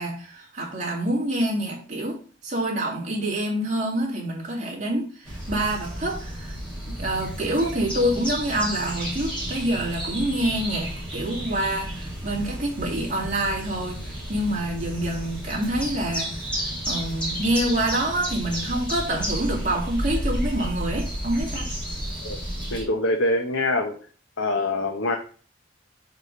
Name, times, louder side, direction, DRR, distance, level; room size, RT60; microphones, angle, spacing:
voice 1, 0.0-6.6 6.9-21.7, right 1 dB, 35° right, -3 dB, 2.5 m, -27 dB
sound 1, 5.3-22.8, equal, 5° left, 3.3 m, -32 dB
voice 2, 22.7-24.0 24.4-25.2, left 2 dB, 90° left, 2 dB, 1.0 m, -24 dB
5.5 x 4.9 x 5.6 m, 0.40 s
head